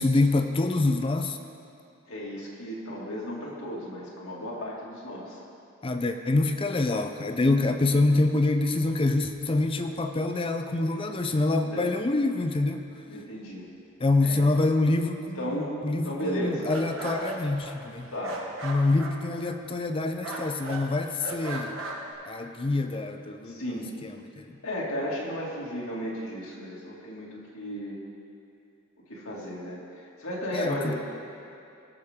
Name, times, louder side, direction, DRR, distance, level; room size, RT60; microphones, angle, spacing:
voice 1, 0.0-1.4 5.8-12.8 14.0-18.1 18.6-21.7 22.3-24.5 30.5-30.9, left 2 dB, 25° left, 7 dB, 0.5 m, -26 dB
voice 2, 2.1-5.4 11.6-11.9 13.0-13.7 14.2-14.4 15.4-16.7 18.1-18.4 23.4-23.9 24.6-28.0 29.1-30.9, equal, 80° left, -5 dB, 2.3 m, -34 dB
sound 1, 16.4-20.0 20.2-20.8 21.2-22.1, right 2 dB, 75° right, 1.5 m, -37 dB
17.5 x 6.6 x 3.6 m, 2.7 s
head